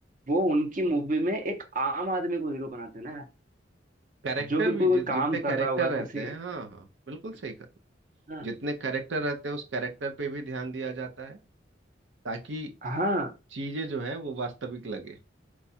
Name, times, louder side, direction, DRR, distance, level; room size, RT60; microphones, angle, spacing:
voice 1, 0.3-3.3 4.5-6.3 8.3-8.5 12.8-13.3, right 1 dB, 45° right, 0.9 m, -28 dB
voice 2, 4.2-7.7 8.4-11.4 12.2-12.7 13.5-15.2, right 3 dB, 80° right, 0.7 m, -33 dB
4.5 x 2.4 x 4.1 m
head